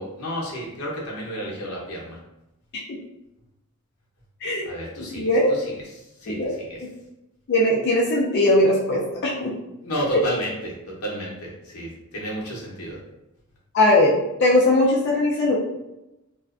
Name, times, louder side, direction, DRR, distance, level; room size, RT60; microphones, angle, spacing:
voice 1, 0.0-2.2 4.6-5.7 6.2-6.8 9.8-13.0, equal, 85° left, -4 dB, 0.7 m, -31 dB
voice 2, 5.0-5.5 6.3-6.9 7.5-9.5 13.7-14.1 14.4-15.6, left 1 dB, 50° left, -3 dB, 0.4 m, -20 dB
2.4 x 2.2 x 2.3 m, 0.93 s
head